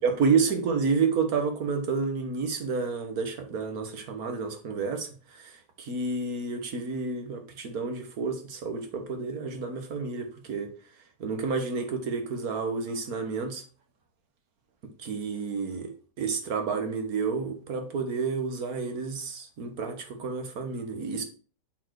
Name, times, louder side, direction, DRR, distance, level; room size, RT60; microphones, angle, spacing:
voice 1, 0.0-5.1 5.4-5.5 5.8-10.7 11.2-13.6 15.0-15.9 16.2-21.2, right 5 dB, 60° right, 1.7 m, -30 dB
7.9 x 4.6 x 4.7 m
omnidirectional pair, 1.9 m